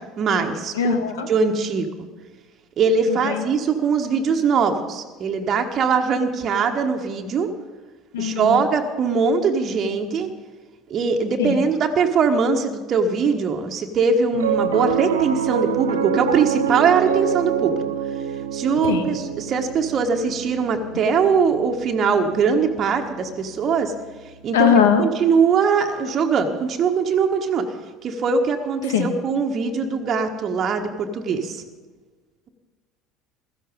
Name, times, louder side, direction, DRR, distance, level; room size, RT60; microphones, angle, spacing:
voice 1, 0.0-0.9 1.3-1.9 2.8-7.5 8.2-10.3 10.9-17.7 18.5-23.9 24.4-27.6 28.0-31.6, right 5 dB, 40° right, 4 dB, 1.4 m, -21 dB
voice 2, 0.7-1.3 3.1-3.4 8.1-8.7 11.4-11.6 18.8-19.1 24.5-25.0 28.9-29.1, left 7 dB, 70° left, 8 dB, 1.5 m, -20 dB
Piano, 14.3-24.8, right 8 dB, 75° right, 0.9 m, -27 dB
16.0 x 13.5 x 5.3 m, 1.4 s
figure-of-eight pair, 65°, 0 cm